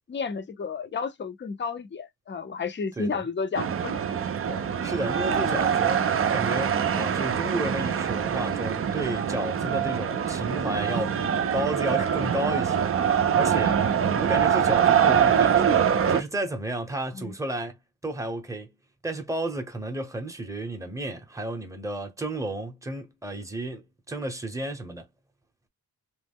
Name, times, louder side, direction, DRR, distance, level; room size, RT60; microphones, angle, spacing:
voice 1, 0.1-4.0 4.5-4.6 17.1-17.3, left 5 dB, 30° left, 0.5 m, -32 dB
sound 1, 3.5-16.2, right 8 dB, 40° right, 0.4 m, -24 dB
voice 2, 4.5-12.9 13.3-18.7 19.0-25.1, right 1 dB, 10° right, 0.7 m, -32 dB
3.1 x 2.0 x 3.4 m
wide cardioid pair, 135°, 37 cm